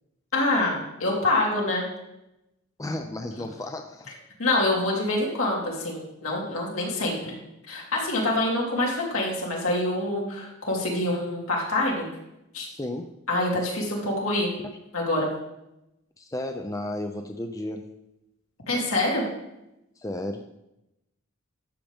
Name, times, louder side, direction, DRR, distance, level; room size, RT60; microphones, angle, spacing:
voice 1, 0.3-1.8 4.4-7.3 7.7-12.0 12.5-12.7 13.3-14.5 14.9-15.3 18.7-19.2, left 2 dB, 80° left, -2 dB, 2.9 m, -26 dB
voice 2, 2.8-4.1 12.7-13.1 16.2-17.9 20.0-20.5, left 1 dB, 15° left, 5 dB, 0.5 m, -33 dB
12.0 x 7.3 x 3.6 m, 0.88 s
head